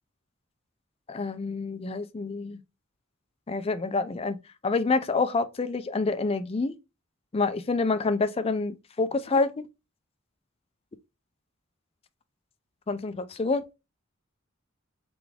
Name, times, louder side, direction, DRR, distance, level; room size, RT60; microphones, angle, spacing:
voice 1, 1.1-2.6 3.5-4.4 4.6-6.7 7.3-9.7 12.9-13.6, left 3 dB, 30° left, 0.4 m, -27 dB
3.8 x 3.4 x 3.3 m
head